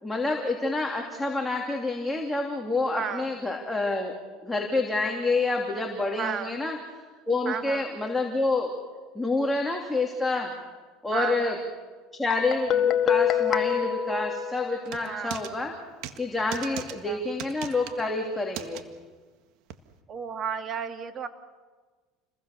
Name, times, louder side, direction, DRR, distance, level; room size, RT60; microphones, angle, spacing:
voice 1, 0.0-4.1 4.4-6.8 7.3-8.7 9.1-10.5 11.0-11.6 12.2-15.7 16.2-18.8, left 3 dB, 10° left, 0 dB, 3.0 m, -28 dB
voice 2, 3.0-3.3 6.2-6.5 7.5-7.9 11.1-11.6 15.0-15.4 16.7-17.2 20.1-21.3, right 7 dB, 40° right, 8 dB, 2.0 m, -33 dB
Guitar, 12.3-15.1, left 8 dB, 45° left, 1.6 m, -26 dB
sound 1, 14.9-15.5 16.0-16.2 16.5-16.9 17.4-18.0 18.5-18.8 19.7-19.8, right 12 dB, 65° right, 1.7 m, -37 dB
29.5 x 21.0 x 6.8 m, 1.4 s
supercardioid pair, 115°, 0 cm